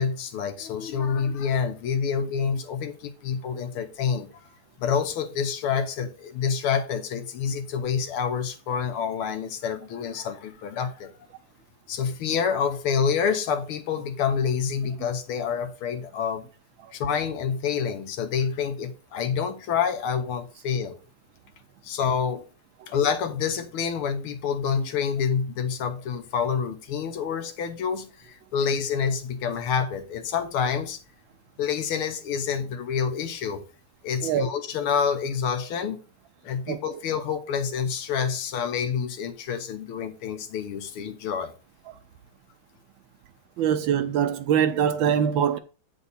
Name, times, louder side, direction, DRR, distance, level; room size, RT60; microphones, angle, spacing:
voice 1, 0.0-4.5 4.8-11.1 11.9-16.4 16.9-21.0 21.8-22.5 22.9-31.0 31.6-33.7 34.0-36.0 36.4-41.5, left 6 dB, 80° left, 1.8 m, -27 dB
voice 2, 43.6-45.6, right 9 dB, 75° right, 1.3 m, -23 dB
8.2 x 4.5 x 4.1 m
omnidirectional pair, 2.4 m